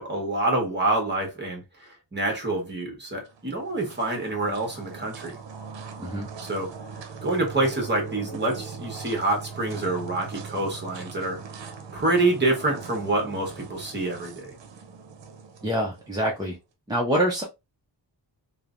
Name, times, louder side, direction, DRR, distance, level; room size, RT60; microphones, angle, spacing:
voice 1, 0.0-5.4 6.4-6.7 7.2-11.7 11.9-14.5, right 2 dB, 25° right, 0.9 m, -27 dB
sound 1, 3.2-16.5, right 5 dB, 80° right, 0.6 m, -41 dB
voice 2, 15.6-16.6 16.9-17.4, equal, 10° right, 0.4 m, -25 dB
3.1 x 2.0 x 2.4 m
wide cardioid pair, 155°, 43 cm